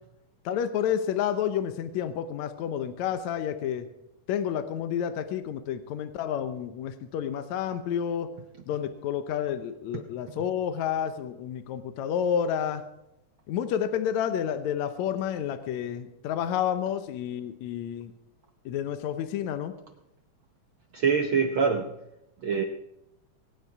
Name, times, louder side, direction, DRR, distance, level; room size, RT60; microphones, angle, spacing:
voice 1, 0.5-3.9 4.3-8.3 8.7-12.8 13.5-18.1 18.7-19.7, left 9 dB, 70° left, 9 dB, 2.0 m, -30 dB
voice 2, 20.9-21.9 22.4-22.6, right 6 dB, 75° right, 5 dB, 1.1 m, -24 dB
23.5 x 9.5 x 4.8 m, 0.87 s
omnidirectional pair, 3.6 m